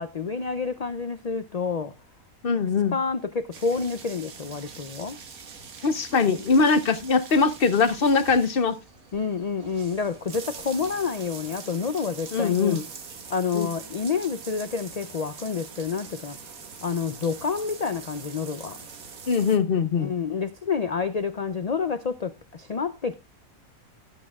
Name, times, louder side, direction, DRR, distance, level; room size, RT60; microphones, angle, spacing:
voice 1, 0.0-1.9 2.9-5.2 9.1-12.8 13.3-16.4 16.8-18.8 20.0-23.1, left 5 dB, 75° left, 0.3 m, -28 dB
voice 2, 2.4-2.9 5.8-8.8 12.3-12.8 13.5-13.7 19.3-20.1, left 5 dB, 50° left, 0.8 m, -22 dB
sound 1, 3.5-19.6, right 5 dB, 85° right, 1.9 m, -43 dB
18.0 x 8.7 x 2.3 m
omnidirectional pair, 1.5 m